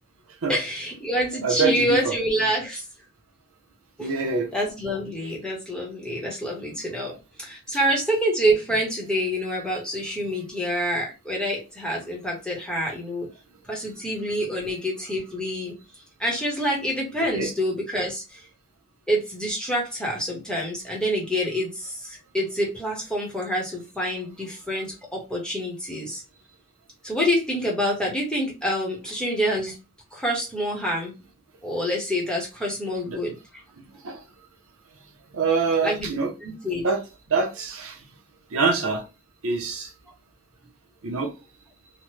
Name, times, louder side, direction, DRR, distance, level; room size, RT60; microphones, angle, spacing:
voice 1, 0.5-2.8 4.0-4.1 4.5-13.3 13.7-15.7 16.2-18.4 19.1-26.2 27.0-29.8 30.1-31.1 31.6-33.4 35.8-36.1 36.4-36.8, equal, 5° left, 0.9 m, -27 dB
voice 2, 1.4-2.1 4.0-4.5 17.3-17.5 33.1-33.2 34.0-34.2 35.3-36.3 36.8-37.0 37.3-37.9 38.5-39.0 39.4-39.9 41.0-41.3, right 4 dB, 70° right, 0.7 m, -24 dB
3.0 x 2.1 x 3.0 m
head